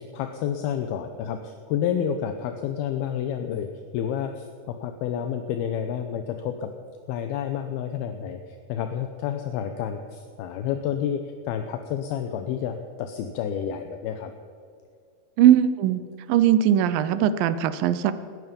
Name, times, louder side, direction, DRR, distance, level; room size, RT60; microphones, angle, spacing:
voice 1, 0.1-3.7 3.9-6.7 7.1-8.4 8.7-11.2 11.5-14.3, left 9 dB, 80° left, 7 dB, 2.7 m, -29 dB
voice 2, 15.4-16.0 16.3-18.1, right 10 dB, 75° right, 13 dB, 2.3 m, -19 dB
19.0 x 14.0 x 5.3 m, 2.3 s
omnidirectional pair, 4.6 m